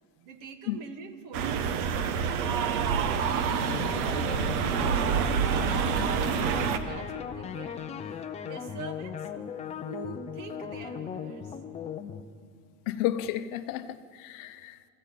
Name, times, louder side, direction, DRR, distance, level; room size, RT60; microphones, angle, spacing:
voice 1, 0.2-2.0 2.6-7.8 8.4-9.3 9.9-11.6, right 5 dB, 40° right, 1.9 m, -45 dB
sound 1, 1.3-6.8, right 7 dB, 60° right, 1.5 m, -27 dB
sound 2, 3.6-12.2, left 7 dB, 15° left, 0.5 m, -37 dB
voice 2, 12.9-14.8, left 13 dB, 40° left, 0.9 m, -32 dB
23.0 x 15.0 x 8.4 m
supercardioid pair, 165°, 48 cm